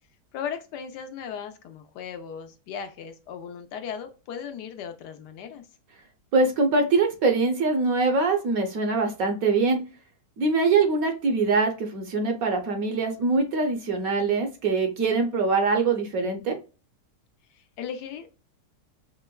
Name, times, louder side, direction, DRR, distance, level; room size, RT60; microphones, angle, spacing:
voice 1, 0.3-5.6 17.8-18.3, left 7 dB, 80° left, 7 dB, 1.2 m, -37 dB
voice 2, 6.3-9.8 10.4-16.6, right 4 dB, 65° right, 5 dB, 1.0 m, -23 dB
5.3 x 2.1 x 2.2 m, 0.32 s
omnidirectional pair, 1.8 m